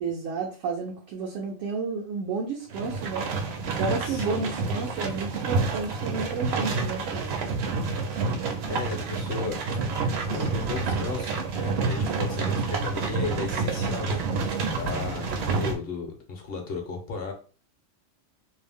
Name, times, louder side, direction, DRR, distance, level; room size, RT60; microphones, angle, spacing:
voice 1, 0.0-3.3 3.8-7.3, right 4 dB, 90° right, 0 dB, 1.0 m, -31 dB
sound 1, 2.7-15.7, right 4 dB, 65° right, 0.7 m, -28 dB
voice 2, 4.0-4.4 8.6-9.6 10.3-14.2 14.7-17.3, left 3 dB, 55° left, 3 dB, 0.8 m, -34 dB
2.6 x 2.0 x 3.3 m, 0.39 s
omnidirectional pair, 1.3 m